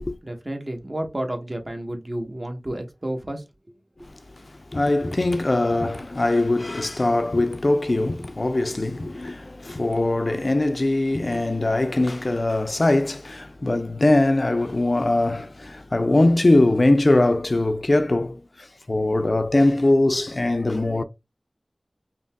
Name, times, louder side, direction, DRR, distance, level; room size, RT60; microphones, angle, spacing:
voice 1, 0.2-3.4, right 1 dB, 40° right, 1.1 m, -31 dB
voice 2, 4.1-21.0, left 2 dB, 50° left, 0.4 m, -21 dB
5.2 x 2.9 x 2.3 m
wide cardioid pair, 50°, 0 cm